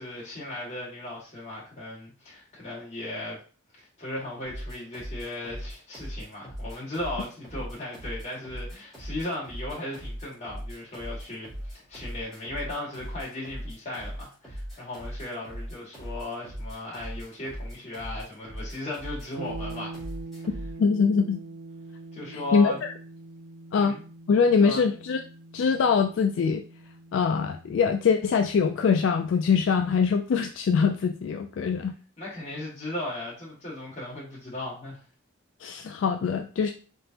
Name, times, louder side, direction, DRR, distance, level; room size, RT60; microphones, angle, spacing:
voice 1, 0.0-3.4 3.8-20.0 22.1-22.8 23.8-24.0 24.6-24.8 32.2-35.0, left 1 dB, 35° left, -5 dB, 1.8 m, -36 dB
sound 1, 4.4-20.7, equal, ahead, 2.1 m, -39 dB
sound 2, 19.4-29.1, right 3 dB, 55° right, 0.3 m, -44 dB
voice 2, 20.8-21.4 22.5-22.9 23.7-24.0 24.3-25.2 25.5-26.6 27.1-31.9 35.6-36.7, left 5 dB, 65° left, 5 dB, 0.3 m, -23 dB
3.9 x 3.5 x 2.8 m, 0.38 s
head